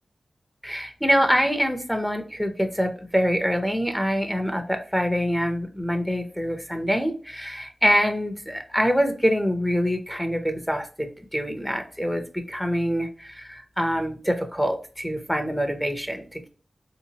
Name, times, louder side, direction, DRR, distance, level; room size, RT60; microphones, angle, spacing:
voice 1, 0.6-12.2 12.5-16.5, equal, ahead, 5 dB, 0.6 m, -25 dB
3.6 x 2.8 x 2.7 m, 0.37 s
cardioid pair, 60°, 0 cm